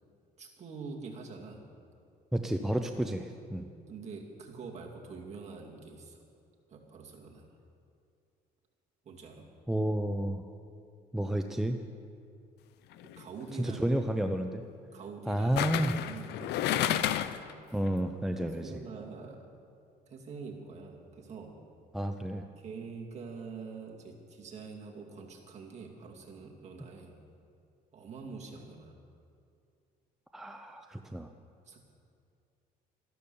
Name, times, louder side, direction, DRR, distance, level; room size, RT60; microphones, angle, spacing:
voice 1, 0.4-1.6 3.9-6.2 6.7-7.5 9.0-9.5 13.0-14.0 14.9-17.1 18.4-19.4 20.1-21.6 22.6-27.2 27.9-28.9 31.7-31.8, right 4 dB, 40° right, -1 dB, 2.5 m, -45 dB
voice 2, 2.3-3.7 9.7-10.4 11.1-11.8 13.6-14.6 15.3-15.9 17.7-18.7 21.9-22.4 30.3-31.3, right 1 dB, ahead, 5 dB, 0.6 m, -31 dB
sound 1, 12.9-13.2 15.6-17.5 17.9-18.0, left 12 dB, 80° left, 0.6 m, -30 dB
13.0 x 12.0 x 7.1 m, 2.5 s
cardioid pair, 110°, 17 cm